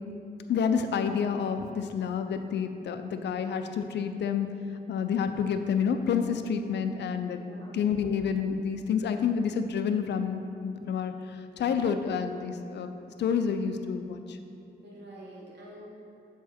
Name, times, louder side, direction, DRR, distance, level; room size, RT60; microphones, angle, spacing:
voice 1, 0.5-4.5 4.9-7.4 7.7-12.9 13.2-14.4, left 6 dB, 85° left, 8 dB, 0.5 m, -29 dB
voice 2, 7.3-7.9 14.8-15.9, right 1 dB, 85° right, -4 dB, 1.5 m, -47 dB
7.1 x 4.7 x 4.3 m, 2.7 s
wide cardioid pair, 135°, 18 cm